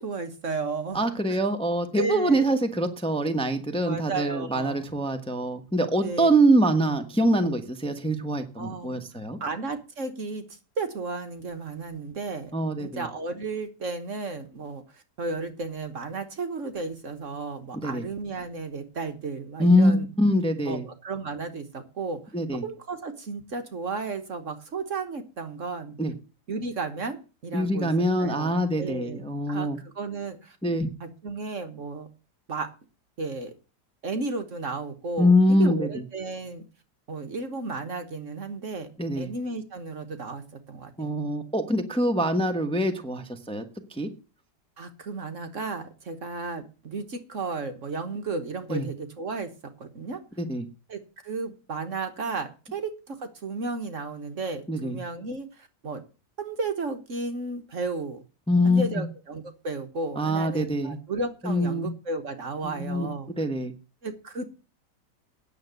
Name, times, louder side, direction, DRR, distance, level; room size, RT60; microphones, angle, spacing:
voice 1, 0.0-1.4 1.9-2.6 3.8-5.1 6.0-6.3 8.6-9.0 9.4-12.5 12.8-20.1 20.7-22.2 22.5-26.0 26.5-27.2 27.4-30.6 31.0-32.1 32.5-32.7 33.2-33.5 34.0-36.6 37.1-38.9 39.2-41.1 44.8-49.5 49.8-50.2 50.9-56.0 56.4-58.2 58.6-63.3 64.0-64.5, right 3 dB, 50° right, 8 dB, 1.5 m, -34 dB
voice 2, 0.9-9.4 12.5-13.1 17.8-18.0 19.6-20.9 22.3-22.6 26.0-26.1 27.5-29.8 30.6-30.9 35.2-36.0 39.0-39.3 41.0-43.6 43.9-44.1 48.7-48.8 50.4-50.7 54.7-55.0 58.5-58.9 60.2-61.0 61.4-61.9 62.6-63.1 63.3-63.7, equal, 5° left, 7 dB, 1.1 m, -24 dB
9.4 x 7.1 x 7.9 m, 0.33 s
omnidirectional pair, 1.8 m